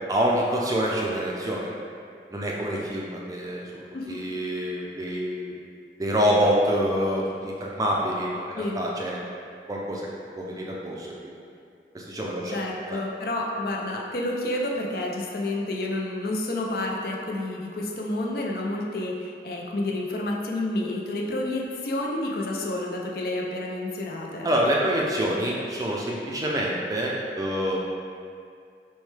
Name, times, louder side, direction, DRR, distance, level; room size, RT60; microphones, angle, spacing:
voice 1, 0.1-1.7 2.3-5.5 6.0-9.2 9.7-10.1 10.4-11.1 11.9-12.6 12.9-13.0 24.4-27.8, equal, 20° right, -3 dB, 0.4 m, -26 dB
voice 2, 12.5-24.5, left 1 dB, 55° left, -1 dB, 0.5 m, -29 dB
6.2 x 2.2 x 3.2 m, 2.3 s
head